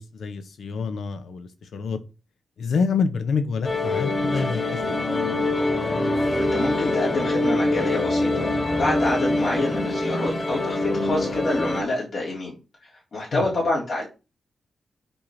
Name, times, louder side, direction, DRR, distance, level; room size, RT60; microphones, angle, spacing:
voice 1, 0.0-2.0 2.6-5.1 13.3-13.5, left 5 dB, 85° left, 1.2 m, -27 dB
sound 1, 3.6-11.8, left 2 dB, 25° left, 2.8 m, -24 dB
voice 2, 6.0-12.6 12.8-14.0, left 2 dB, 60° left, 3.9 m, -27 dB
8.4 x 4.6 x 5.9 m
wide cardioid pair, 125°, 0 cm